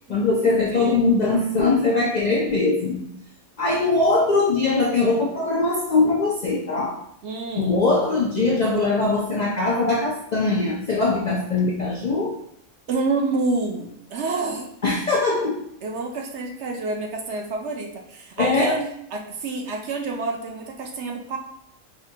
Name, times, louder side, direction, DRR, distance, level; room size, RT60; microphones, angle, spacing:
voice 1, 0.1-3.0 3.6-7.0 7.6-12.3 14.8-15.5 18.4-18.8, left 3 dB, 75° left, -3 dB, 0.4 m, -21 dB
voice 2, 0.7-1.1 7.2-7.8 12.9-14.7 15.8-21.4, right 3 dB, 65° right, 1 dB, 0.8 m, -28 dB
4.8 x 2.2 x 2.7 m, 0.74 s
omnidirectional pair, 1.4 m